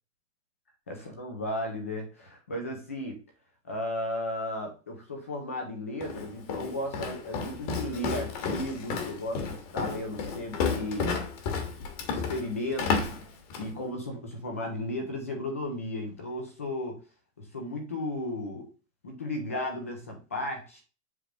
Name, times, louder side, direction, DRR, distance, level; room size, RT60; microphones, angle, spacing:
voice 1, 1.1-3.2 3.6-11.2 12.1-13.2 13.6-17.0 17.4-18.7 19.0-20.8, left 1 dB, 10° left, 3 dB, 0.4 m, -35 dB
Walk footsteps, 6.0-13.8, left 5 dB, 30° left, 1.2 m, -32 dB
7.7 x 3.3 x 6.1 m, 0.33 s
supercardioid pair, 180°, 39 cm